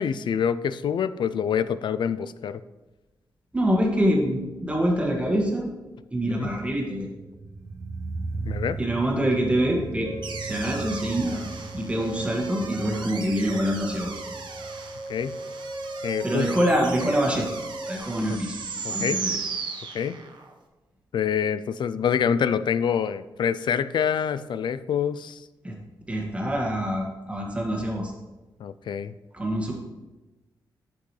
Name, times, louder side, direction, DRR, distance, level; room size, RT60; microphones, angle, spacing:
voice 1, 0.0-2.6 6.3-6.5 8.5-8.8 15.1-15.4 16.0-16.5 18.3-18.4 18.8-19.2 19.9-20.2 21.1-25.4 28.6-29.1, left 7 dB, 65° left, 14 dB, 0.4 m, -26 dB
voice 2, 3.5-5.7 6.1-7.1 8.8-11.4 11.7-14.2 16.2-17.5 17.8-18.6 18.9-19.4 25.6-25.8 26.1-28.1 29.3-29.7, equal, 15° right, -1 dB, 1.8 m, -25 dB
sound 1, 7.1-18.1 18.4-18.5, right 3 dB, 35° right, 0.8 m, -38 dB
sound 2, 10.0-18.0, right 1 dB, 15° left, 1.6 m, -37 dB
sound 3, 10.2-20.5, right 4 dB, 65° right, 1.0 m, -37 dB
10.0 x 6.0 x 3.2 m, 1.1 s
wide cardioid pair, 110°, 8 cm